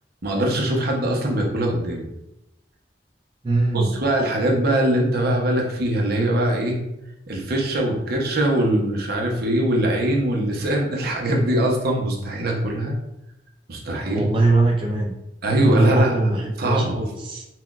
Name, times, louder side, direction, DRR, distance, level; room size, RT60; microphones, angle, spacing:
voice 1, 0.2-2.1 3.7-6.8 7.3-12.9 13.7-14.2 15.4-16.1 16.6-16.9, right 1 dB, 60° right, -1 dB, 0.8 m, -22 dB
voice 2, 3.4-4.0 14.0-15.2 15.6-17.4, right 2 dB, 30° right, -1 dB, 0.4 m, -21 dB
5.7 x 2.2 x 2.4 m, 0.90 s
head